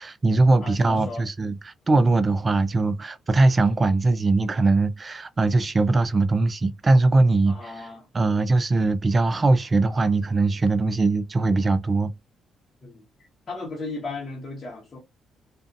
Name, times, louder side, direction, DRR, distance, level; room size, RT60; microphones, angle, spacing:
voice 1, 0.0-7.9 8.1-12.1, right 3 dB, 30° right, 0.4 m, -21 dB
voice 2, 0.6-1.2 7.5-8.1 12.8-13.0 13.5-15.0, left 3 dB, 35° left, 1.1 m, -35 dB
2.6 x 2.5 x 2.5 m
cardioid pair, 90°, 0 cm